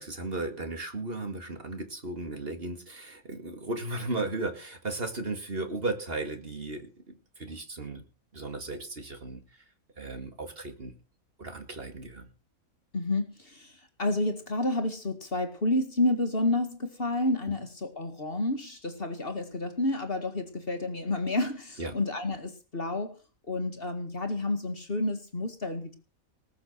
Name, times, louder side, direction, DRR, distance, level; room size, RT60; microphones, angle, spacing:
voice 1, 0.0-8.0 8.3-9.4 10.0-10.9 11.4-12.3 21.8-22.0, right 2 dB, 40° right, 7 dB, 2.4 m, -35 dB
voice 2, 12.9-23.2 23.5-26.0, left 2 dB, 40° left, 7 dB, 2.1 m, -30 dB
19.5 x 7.2 x 6.5 m, 0.34 s
omnidirectional pair, 1.5 m